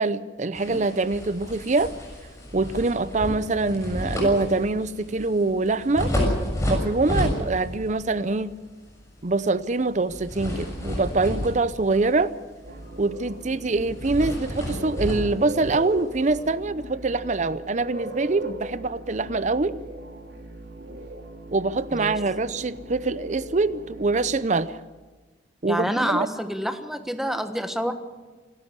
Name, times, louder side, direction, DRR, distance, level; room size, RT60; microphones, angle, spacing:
voice 1, 0.0-1.9 2.5-6.1 6.7-8.5 9.2-12.3 13.0-19.7 21.5-24.8 25.6-26.3, right 3 dB, 40° right, 16 dB, 0.6 m, -24 dB
sound 1, 0.5-7.9 8.3-8.5 10.1-12.3 12.6-12.9 13.1-13.3 13.8-16.4, left 1 dB, 15° left, 6.7 m, -30 dB
sound 2, 12.6-24.4, right 2 dB, 75° right, 3.8 m, -39 dB
voice 2, 25.7-27.9, equal, ahead, 7 dB, 1.3 m, -27 dB
27.0 x 12.5 x 8.1 m, 1.3 s
head